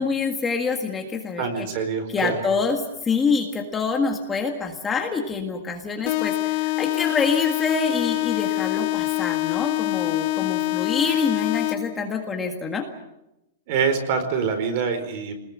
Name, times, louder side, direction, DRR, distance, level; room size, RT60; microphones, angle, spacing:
voice 1, 0.0-1.7 2.1-12.8, left 4 dB, 10° left, 2 dB, 1.8 m, -26 dB
voice 2, 1.4-2.4 13.7-15.3, right 6 dB, 40° right, 8 dB, 4.7 m, -25 dB
sound 1, 6.1-12.1, left 20 dB, 35° left, 1.0 m, -25 dB
27.0 x 20.5 x 7.5 m, 0.89 s
supercardioid pair, 175°, 0 cm